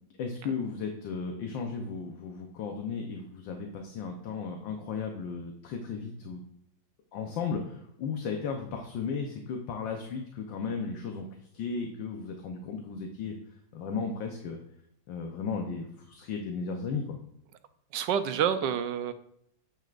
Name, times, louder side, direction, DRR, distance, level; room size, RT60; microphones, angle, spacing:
voice 1, 0.2-6.4 7.1-11.3 11.5-13.4 13.7-14.6 15.1-17.2, left 5 dB, 75° left, 3 dB, 1.6 m, -35 dB
voice 2, 17.9-19.1, right 8 dB, 70° right, 10 dB, 1.2 m, -28 dB
9.1 x 8.8 x 2.5 m, 0.74 s
omnidirectional pair, 2.1 m